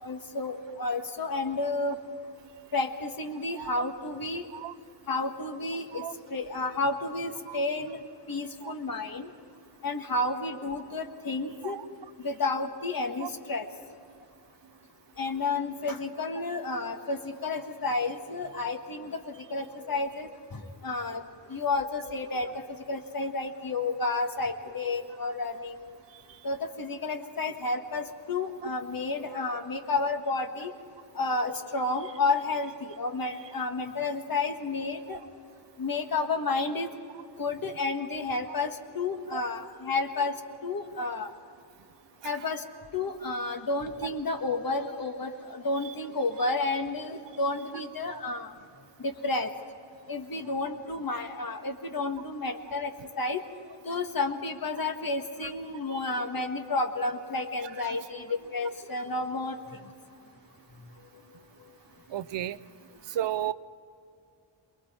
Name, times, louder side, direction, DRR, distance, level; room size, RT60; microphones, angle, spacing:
voice 1, 0.0-2.0 2.7-4.4 5.1-6.0 6.3-8.0 8.3-9.3 9.8-11.7 12.2-13.6 15.2-19.2 19.5-21.2 21.5-22.5 22.9-26.0 26.4-30.7 31.2-32.7 33.0-35.2 35.8-36.9 37.4-38.7 38.9-40.3 40.6-41.3 42.2-42.6 42.9-48.5 49.0-49.5 50.1-52.9 53.2-53.4 53.8-59.5, left 3 dB, 45° left, 5 dB, 1.6 m, -31 dB
voice 2, 62.1-62.6 63.1-63.5, right 12 dB, 65° right, 16 dB, 0.6 m, -34 dB
28.0 x 21.5 x 4.4 m, 2.6 s
wide cardioid pair, 110°, 46 cm